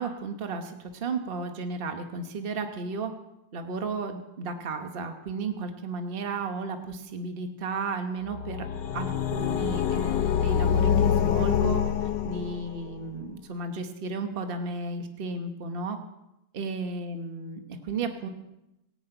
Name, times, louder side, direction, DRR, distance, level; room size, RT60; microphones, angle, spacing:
voice 1, 0.0-3.1 3.5-8.7 8.9-11.9 12.2-16.0 16.5-18.3, right 4 dB, 35° right, 6 dB, 1.3 m, -34 dB
sound 1, 8.3-12.9, left 8 dB, 90° left, 1.4 m, -25 dB
18.5 x 6.4 x 8.9 m, 0.89 s
omnidirectional pair, 1.8 m